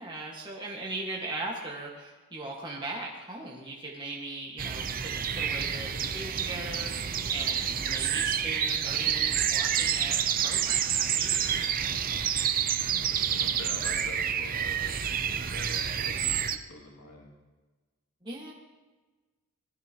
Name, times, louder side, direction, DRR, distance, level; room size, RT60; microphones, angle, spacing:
voice 1, 0.0-11.7 18.2-18.5, right 2 dB, 20° right, -3 dB, 1.8 m, -39 dB
sound 1, 4.6-16.6, right 8 dB, 40° right, 0.6 m, -28 dB
voice 2, 12.9-17.3, left 2 dB, 85° left, -1 dB, 2.5 m, -46 dB
20.5 x 13.5 x 3.0 m, 1.3 s
head